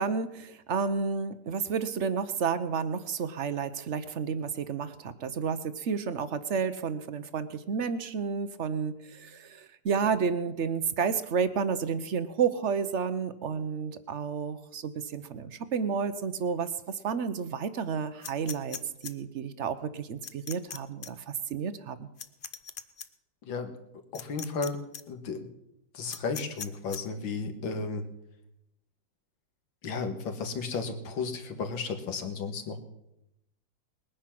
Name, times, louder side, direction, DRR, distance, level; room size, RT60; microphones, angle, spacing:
voice 1, 0.0-22.1, right 6 dB, 60° right, 12 dB, 0.8 m, -31 dB
sound 1, 18.2-19.1 20.2-20.8 21.0-21.1 22.2-23.1 24.1-24.7 24.9-25.0 26.1-27.0, left 7 dB, 60° left, 0.5 m, -39 dB
voice 2, 23.4-23.8 24.1-24.8 25.1-25.5 25.9-28.1 29.8-32.8, left 4 dB, 80° left, 7 dB, 2.3 m, -34 dB
20.5 x 9.9 x 5.9 m, 0.85 s
omnidirectional pair, 2.1 m